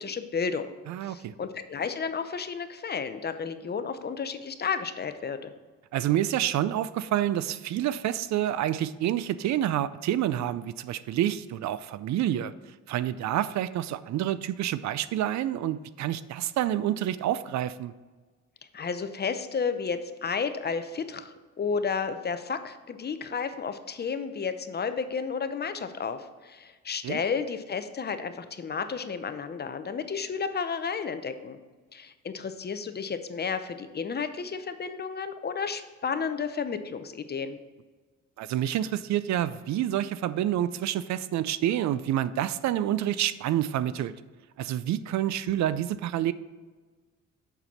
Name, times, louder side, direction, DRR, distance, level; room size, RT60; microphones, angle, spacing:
voice 1, 0.0-0.7 1.0-5.5 18.7-31.6 31.9-37.6, left 5 dB, 35° left, 10 dB, 0.6 m, -32 dB
voice 2, 0.9-1.3 5.9-12.5 12.9-17.9 27.0-27.2 38.4-44.1 44.6-46.3, right 12 dB, 70° right, 15 dB, 0.4 m, -28 dB
6.8 x 6.1 x 4.3 m, 1.4 s
cardioid pair, 90°, 30 cm